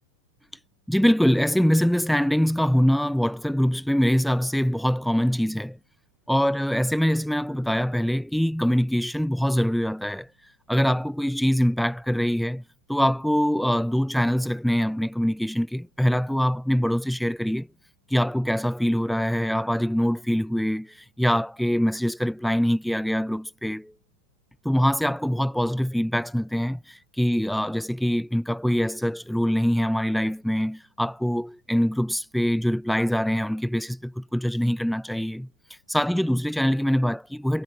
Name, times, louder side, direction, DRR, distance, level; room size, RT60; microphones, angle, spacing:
voice 1, 0.9-5.8 6.3-10.3 10.7-12.6 12.9-17.7 18.1-23.9 24.6-37.6, equal, ahead, 1.1 m, -24 dB
figure-of-eight pair, 90°, 0 cm